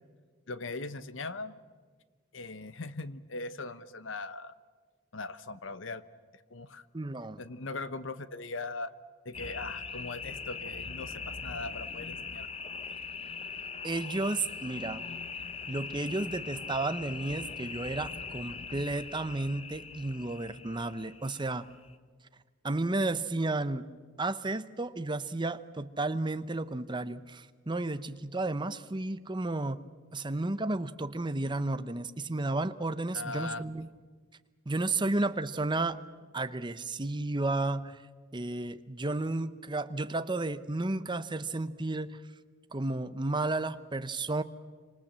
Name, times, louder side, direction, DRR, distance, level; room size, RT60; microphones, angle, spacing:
voice 1, 0.5-1.6 2.3-4.5 5.1-6.0 6.3-6.8 7.4-8.9 9.2-12.5 33.1-33.6, left 3 dB, 70° left, 14 dB, 1.0 m, -40 dB
voice 2, 6.9-7.4 13.8-15.0 15.7-21.7 22.6-23.9 24.2-29.8 30.1-33.9 34.7-36.0 36.3-38.0 38.3-42.2 42.7-44.4, right 2 dB, 25° right, 12 dB, 0.9 m, -32 dB
sound 1, 9.3-21.9, left 5 dB, 30° left, 1.0 m, -41 dB
28.0 x 25.5 x 7.6 m, 1.5 s
head